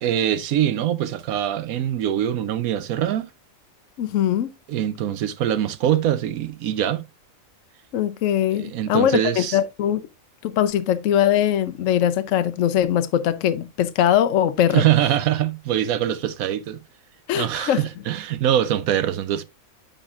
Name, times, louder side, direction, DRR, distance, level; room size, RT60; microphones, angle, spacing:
voice 1, 0.0-3.3 4.7-7.0 8.5-9.6 14.7-16.8 17.3-19.4, right 11 dB, 90° right, 1.2 m, -23 dB
voice 2, 4.0-4.5 7.9-10.0 10.4-14.8 17.3-17.8, left 10 dB, 70° left, 0.9 m, -21 dB
9.9 x 5.2 x 2.4 m
omnidirectional pair, 1.4 m